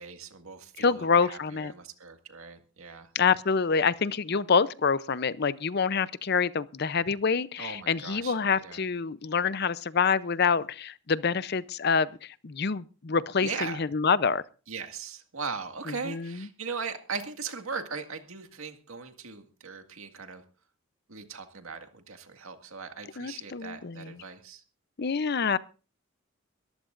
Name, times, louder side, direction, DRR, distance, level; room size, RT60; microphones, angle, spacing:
voice 1, 0.0-3.1 7.6-8.8 13.4-13.8 14.7-20.4 21.1-24.6, right 5 dB, 90° right, 2.0 m, -39 dB
voice 2, 0.8-1.7 3.1-14.4 15.9-16.5 23.2-24.2 25.0-25.6, left 5 dB, 50° left, 0.6 m, -26 dB
23.0 x 14.5 x 2.5 m
head